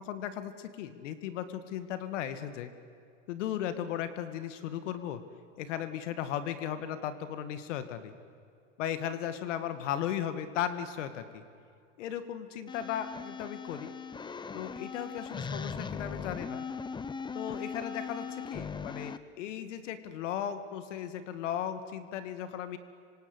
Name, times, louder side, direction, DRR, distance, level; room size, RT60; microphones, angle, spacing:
voice 1, 0.0-2.7 3.3-5.2 5.6-8.1 8.8-11.4 12.0-13.9 14.5-16.6 17.3-22.8, left 10 dB, 75° left, 11 dB, 2.3 m, -36 dB
sound 1, 12.7-19.2, left 5 dB, 10° left, 0.9 m, -39 dB
26.5 x 26.0 x 8.1 m, 2.4 s
supercardioid pair, 130°, 37 cm